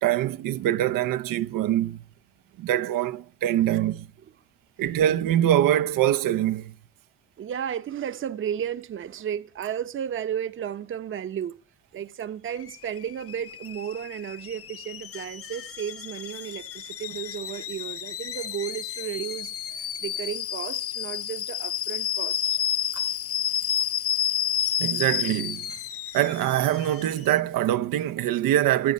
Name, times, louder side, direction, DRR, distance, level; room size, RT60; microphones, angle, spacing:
voice 1, 0.0-2.0 2.6-4.1 4.8-6.7 22.9-23.0 24.8-25.7 26.1-28.9, right 12 dB, 90° right, 1.0 m, -24 dB
voice 2, 7.4-11.6 11.9-22.6, right 9 dB, 40° right, 0.9 m, -33 dB
Alarm / Boiling, 12.5-27.4, left 9 dB, 45° left, 1.0 m, -31 dB
22.5 x 9.5 x 5.3 m
cardioid pair, 170°, 33 cm